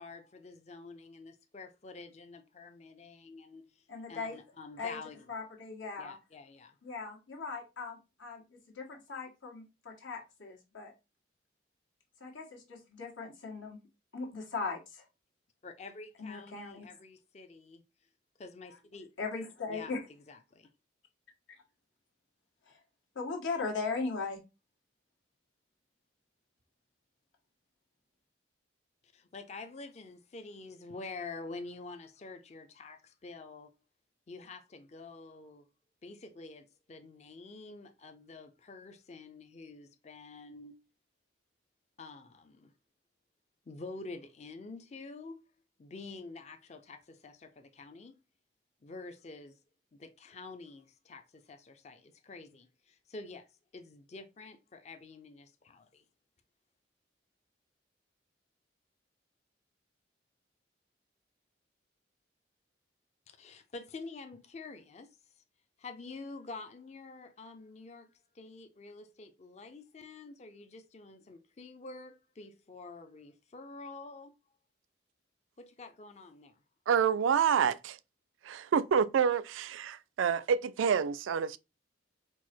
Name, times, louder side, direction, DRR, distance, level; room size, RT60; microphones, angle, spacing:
voice 1, 0.0-5.3 6.0-6.8 15.6-17.8 18.4-19.1 19.7-19.9 20.3-20.7 29.1-33.7 34.3-35.7 36.0-40.8 42.0-42.7 43.7-45.4 45.8-48.1 48.8-49.6 49.9-53.5 53.7-56.0 63.3-65.4 65.8-74.3 75.6-76.6, left 3 dB, 35° left, 0.4 m, -48 dB
voice 2, 3.9-4.4 4.8-5.0 5.3-6.2 6.8-10.9 12.2-13.8 14.1-15.0 16.2-16.8 19.2-20.0 21.5-21.6 22.7-22.8 23.1-24.4, left 4 dB, 85° left, 1.4 m, -39 dB
voice 3, 76.9-78.0 78.4-81.6, right 7 dB, 90° right, 0.3 m, -28 dB
4.6 x 2.0 x 4.3 m
head